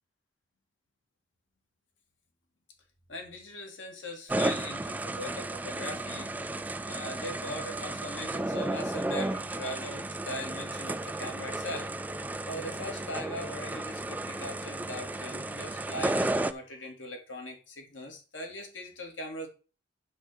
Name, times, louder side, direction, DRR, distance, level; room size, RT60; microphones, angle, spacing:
voice 1, 3.1-6.3 6.9-11.9 12.5-19.5, left 1 dB, 85° left, 2 dB, 2.8 m, -40 dB
sound 1, 4.3-16.5, right 2 dB, 10° right, 0.3 m, -33 dB
10.5 x 3.9 x 6.5 m, 0.34 s
head